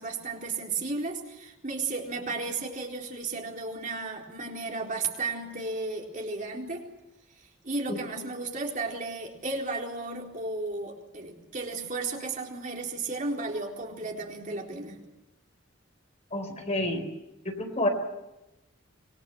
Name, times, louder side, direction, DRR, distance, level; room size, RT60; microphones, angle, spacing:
voice 1, 0.0-6.9 7.4-15.0, right 3 dB, 40° right, 0 dB, 4.1 m, -34 dB
voice 2, 16.3-17.0 17.4-17.9, left 1 dB, 35° left, 5 dB, 4.1 m, -29 dB
26.0 x 22.0 x 8.0 m, 0.97 s
head